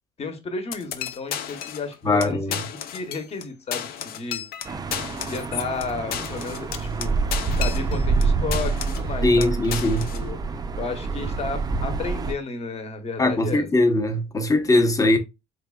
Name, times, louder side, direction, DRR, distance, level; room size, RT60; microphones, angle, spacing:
voice 1, 0.2-2.6 2.9-4.4 5.3-7.1 7.6-9.6 10.0-10.4 10.8-13.7, left 4 dB, 40° left, 1.0 m, -32 dB
sound 1, 0.7-1.9 2.2-2.3 2.5-3.4 3.7-8.2 8.5-9.1 9.4-10.2, left 9 dB, 65° left, 0.6 m, -33 dB
voice 2, 2.0-2.6 9.2-10.1 13.2-15.2, left 2 dB, 20° left, 0.8 m, -20 dB
sound 2, 4.6-12.3, right 4 dB, 25° right, 0.4 m, -27 dB
4.3 x 3.2 x 2.3 m
cardioid pair, 110°, 17 cm